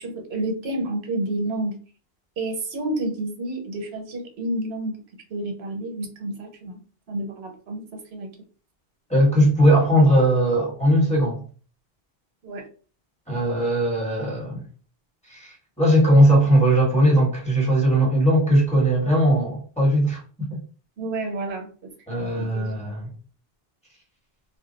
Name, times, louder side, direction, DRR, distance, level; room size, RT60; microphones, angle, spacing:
voice 1, 0.0-1.8 2.4-5.0 5.3-6.8 7.1-7.8 8.1-8.3 12.4-12.7 21.0-21.7 22.1-22.8, right 1 dB, 85° right, 1.0 m, -29 dB
voice 2, 9.1-11.4 13.3-14.6 15.3-20.6 22.1-23.1, right 1 dB, 5° left, 1.3 m, -19 dB
2.4 x 2.2 x 3.8 m
omnidirectional pair, 1.0 m